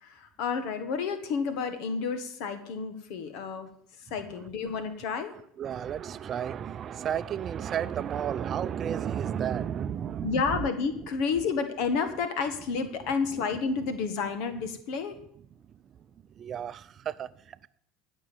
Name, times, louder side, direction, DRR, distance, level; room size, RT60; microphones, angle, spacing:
voice 1, 0.0-3.7 4.1-5.3 10.2-15.1, left 5 dB, 70° left, 1.5 m, -30 dB
voice 2, 5.3-10.7 12.9-13.0 13.3-13.5 15.7-15.9 16.4-17.7, right 9 dB, 40° right, 0.6 m, -33 dB
15.0 x 6.3 x 7.3 m
supercardioid pair, 115°, 0 cm